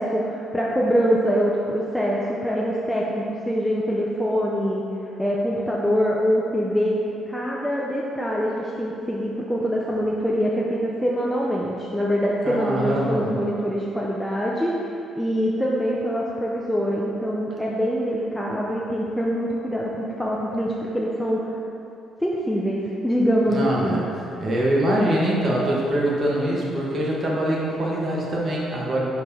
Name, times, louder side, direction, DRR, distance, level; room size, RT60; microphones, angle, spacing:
voice 1, 0.0-4.8 5.2-7.0 7.3-14.8 15.1-21.5 22.2-24.1, equal, ahead, -4 dB, 0.5 m, -24 dB
voice 2, 12.4-13.3 23.5-24.0 24.4-29.0, right 1 dB, 35° right, -4 dB, 1.3 m, -23 dB
5.0 x 4.7 x 5.4 m, 2.8 s
cardioid pair, 140°, 0 cm